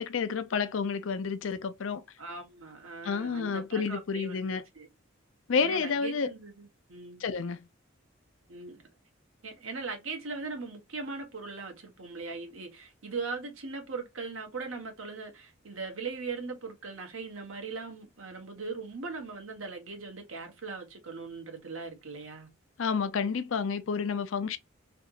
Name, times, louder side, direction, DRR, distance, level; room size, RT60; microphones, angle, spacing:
voice 1, 0.0-2.0 3.0-4.6 5.5-6.3 7.2-7.6 22.8-24.6, left 5 dB, 70° left, 0.5 m, -30 dB
voice 2, 2.2-4.5 4.7-4.9 5.6-7.2 8.5-8.8 9.4-22.5, right 4 dB, 90° right, 1.3 m, -40 dB
3.4 x 2.8 x 2.4 m
head